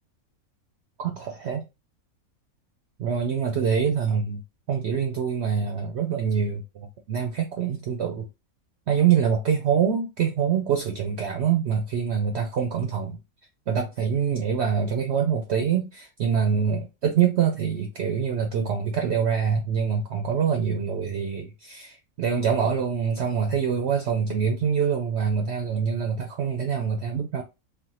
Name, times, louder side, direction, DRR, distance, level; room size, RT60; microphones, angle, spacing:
voice 1, 1.0-1.7 3.0-4.4 4.7-8.3 8.9-13.2 13.7-27.4, right 7 dB, 65° right, 0.7 m, -25 dB
3.3 x 2.1 x 2.8 m
omnidirectional pair, 1.5 m